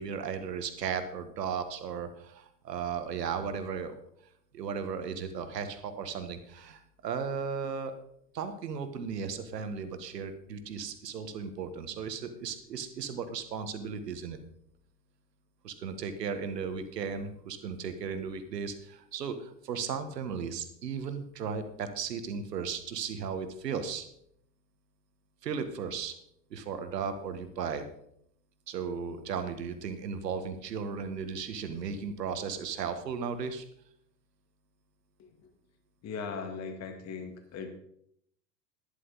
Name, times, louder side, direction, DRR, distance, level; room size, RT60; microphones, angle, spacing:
voice 1, 0.0-4.0 4.5-7.9 8.3-14.4 15.6-24.1 25.4-26.1 26.5-27.8 28.7-33.7, right 6 dB, 75° right, 9 dB, 1.7 m, -36 dB
voice 2, 35.2-35.5 36.0-37.8, left 5 dB, 30° left, 6 dB, 2.0 m, -39 dB
11.5 x 11.0 x 4.1 m, 0.72 s
hypercardioid pair, 105°, 49 cm